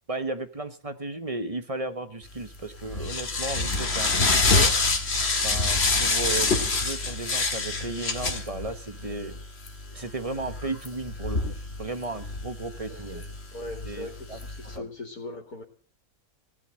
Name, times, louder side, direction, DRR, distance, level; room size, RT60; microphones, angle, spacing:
voice 1, 0.1-4.7 5.4-9.4 9.9-13.2 13.8-14.4 14.7-14.9, right 2 dB, 25° right, 10 dB, 1.3 m, -34 dB
sound 1, 2.3-14.8, left 3 dB, 45° left, 2.1 m, -27 dB
voice 2, 12.9-13.2 13.5-15.6, left 2 dB, 85° left, 1 dB, 3.0 m, -40 dB
16.5 x 11.5 x 7.6 m, 0.42 s
omnidirectional pair, 1.5 m